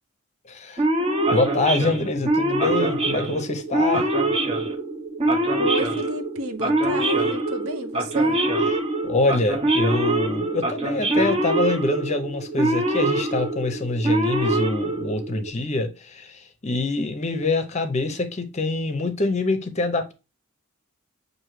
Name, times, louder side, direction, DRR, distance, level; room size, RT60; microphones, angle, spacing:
voice 1, 0.5-0.9 1.3-4.1 9.0-20.1, left 2 dB, 30° left, 0.6 m, -25 dB
Male speech man speaking / Siren, 0.8-15.5, right 1 dB, 25° right, 0.7 m, -24 dB
voice 2, 5.6-8.4, right 1 dB, 75° right, 0.7 m, -31 dB
6.1 x 2.6 x 3.0 m
head